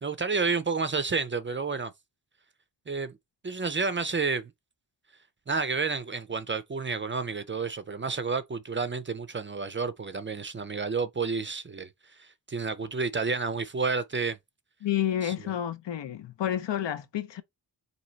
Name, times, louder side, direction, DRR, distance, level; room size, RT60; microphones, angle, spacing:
voice 1, 0.0-1.9 2.9-3.1 3.4-4.4 5.5-11.9 12.2-14.4 15.2-15.3, right 4 dB, 30° right, 0.4 m, -30 dB
voice 2, 14.8-17.4, left 11 dB, 85° left, 0.7 m, -30 dB
4.3 x 2.7 x 3.9 m
wide cardioid pair, 165°, 42 cm